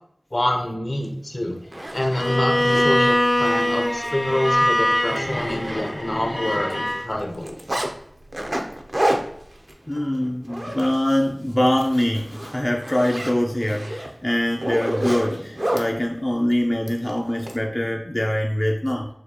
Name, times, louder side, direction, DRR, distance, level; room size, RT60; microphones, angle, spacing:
voice 1, 0.3-1.6 1.9-7.5, left 1 dB, 60° left, 2 dB, 0.8 m, -26 dB
Zipper (clothing), 1.0-1.1 1.6-2.9 3.5-3.6 4.0-4.1 4.5-4.6 4.9-6.2 6.5-7.9 8.3-11.3 11.6-11.9 12.2-15.9 16.9-17.6, right 1 dB, 50° right, 0.6 m, -29 dB
Bowed string instrument, 2.1-7.0, left 1 dB, 75° left, 1.7 m, -22 dB
voice 2, 9.9-19.1, left 1 dB, 30° left, 0 dB, 0.4 m, -23 dB
6.4 x 2.3 x 2.9 m, 0.71 s
wide cardioid pair, 45°, 0 cm